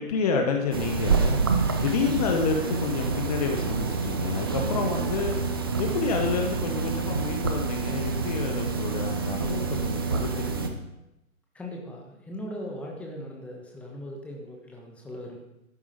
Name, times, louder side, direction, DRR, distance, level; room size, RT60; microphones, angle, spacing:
voice 1, 0.0-5.4 5.8-10.8, left 5 dB, 25° left, 3 dB, 1.2 m, -29 dB
sound 1, 0.7-10.7, right 4 dB, 15° right, 0.5 m, -27 dB
voice 2, 11.5-15.4, equal, 5° left, -1 dB, 1.3 m, -39 dB
12.5 x 9.8 x 5.2 m, 0.90 s
figure-of-eight pair, 140°, 43 cm